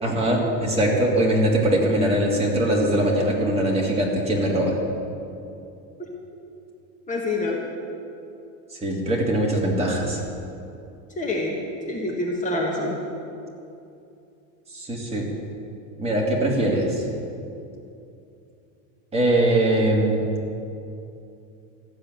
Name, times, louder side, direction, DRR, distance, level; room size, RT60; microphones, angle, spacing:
voice 1, 0.0-4.8 8.7-10.2 14.7-15.3 16.0-17.0 19.1-20.2, right 1 dB, 15° right, -3 dB, 2.8 m, -22 dB
voice 2, 7.1-7.6 11.2-11.6 11.9-13.0, left 2 dB, 20° left, -2 dB, 1.8 m, -26 dB
14.5 x 7.7 x 9.4 m, 2.7 s
supercardioid pair, 135°, 38 cm